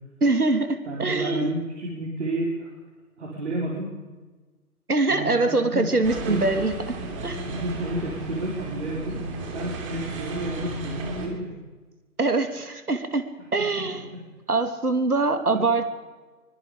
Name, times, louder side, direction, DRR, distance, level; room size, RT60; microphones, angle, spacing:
voice 1, 0.2-1.5 4.9-7.0 7.2-7.5 12.2-13.2 13.5-14.0 14.5-15.9, right 3 dB, 75° right, 7 dB, 2.9 m, -23 dB
voice 2, 0.8-2.7 3.2-3.9 5.1-5.9 6.2-6.4 7.5-11.5 13.5-13.6 15.5-15.6, right 1 dB, 45° right, -3 dB, 4.9 m, -31 dB
sound 1, 6.0-11.3, right 2 dB, 20° right, 2.9 m, -34 dB
24.0 x 22.5 x 5.2 m, 1.3 s
figure-of-eight pair, 145°, 45 cm